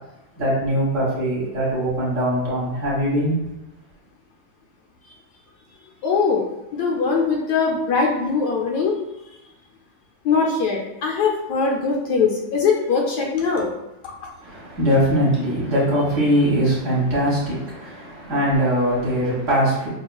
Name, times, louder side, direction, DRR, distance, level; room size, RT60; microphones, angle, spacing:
voice 1, 0.4-3.4 14.4-19.9, equal, 50° right, -6 dB, 1.3 m, -21 dB
voice 2, 6.0-6.4 6.7-8.9 10.2-13.7, left 5 dB, 70° left, -1 dB, 1.1 m, -21 dB
5.3 x 2.4 x 2.3 m, 0.92 s
omnidirectional pair, 2.0 m